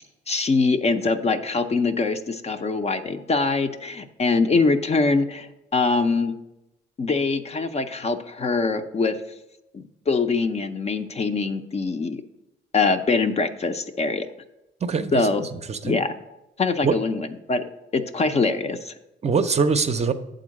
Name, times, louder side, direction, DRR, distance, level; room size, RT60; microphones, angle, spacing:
voice 1, 0.3-6.3 7.0-9.2 9.7-12.2 12.7-14.3 15.1-15.4 15.8-16.1 16.6-19.0, left 3 dB, 30° left, 8 dB, 0.5 m, -23 dB
voice 2, 14.8-15.1 15.4-16.0 16.8-17.0 19.2-20.1, right 5 dB, 35° right, 9 dB, 0.5 m, -23 dB
8.1 x 3.9 x 6.3 m, 0.94 s
cardioid pair, 90°, 20 cm